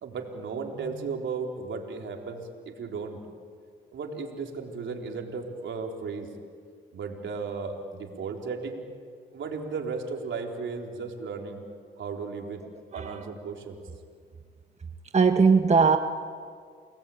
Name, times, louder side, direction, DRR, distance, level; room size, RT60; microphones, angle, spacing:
voice 1, 0.0-3.2 3.9-6.3 6.9-8.8 9.3-11.6 12.0-12.6 12.9-13.8, right 4 dB, 65° right, 2 dB, 4.2 m, -35 dB
voice 2, 15.1-16.0, right 5 dB, 30° right, 6 dB, 1.4 m, -19 dB
29.5 x 20.0 x 8.8 m, 2.1 s
supercardioid pair, 65°, 21 cm